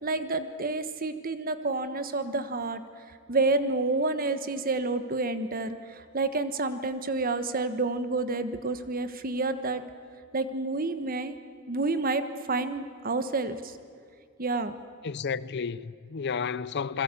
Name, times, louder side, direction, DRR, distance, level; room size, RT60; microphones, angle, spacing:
voice 1, 0.0-2.8 3.3-9.8 10.3-11.4 11.7-13.7 14.4-14.8, right 3 dB, 45° right, 1.3 m, -29 dB
voice 2, 15.0-17.0, left 6 dB, 55° left, 0.6 m, -31 dB
28.5 x 21.0 x 8.4 m
head